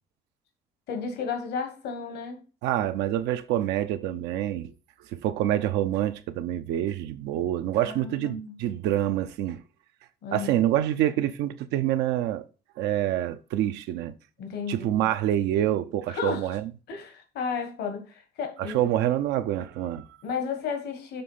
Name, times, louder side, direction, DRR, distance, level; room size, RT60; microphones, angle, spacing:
voice 1, 0.9-2.4 7.8-8.6 10.2-10.6 14.4-15.1 16.1-16.6 16.9-18.9 20.2-21.2, left 5 dB, 75° left, 1.5 m, -33 dB
voice 2, 2.6-4.7 5.1-9.6 10.3-12.4 12.8-14.1 14.7-16.7 18.7-20.0, right 12 dB, 90° right, 0.7 m, -26 dB
6.9 x 3.4 x 5.5 m
cardioid pair, 110°, 17 cm